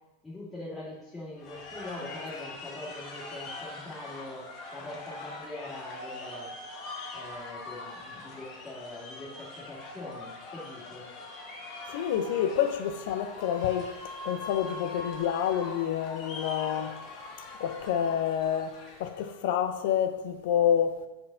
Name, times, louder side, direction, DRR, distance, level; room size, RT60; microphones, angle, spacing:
voice 1, 0.2-6.5 7.1-11.1, left 1 dB, 10° left, 1.7 m, -43 dB
sound 1, 1.4-19.4, left 3 dB, 45° left, 1.2 m, -43 dB
voice 2, 11.9-13.9 14.2-17.0 17.6-21.1, left 9 dB, 65° left, 0.5 m, -28 dB
5.7 x 4.5 x 3.7 m
hypercardioid pair, 115°, 0 cm